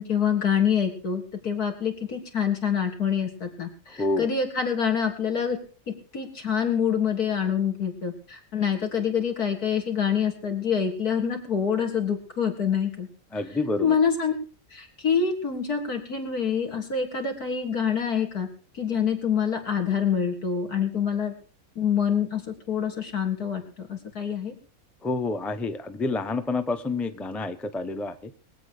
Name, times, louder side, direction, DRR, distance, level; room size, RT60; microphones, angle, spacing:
voice 1, 0.0-5.6 6.1-13.1 13.8-14.3 14.7-18.5 18.8-21.3 21.8-24.5, left 7 dB, 85° left, 3 dB, 3.7 m, -26 dB
voice 2, 4.0-4.3 13.3-13.9 25.0-28.3, left 3 dB, ahead, 10 dB, 0.6 m, -28 dB
23.0 x 8.4 x 4.9 m, 0.39 s
omnidirectional pair, 1.6 m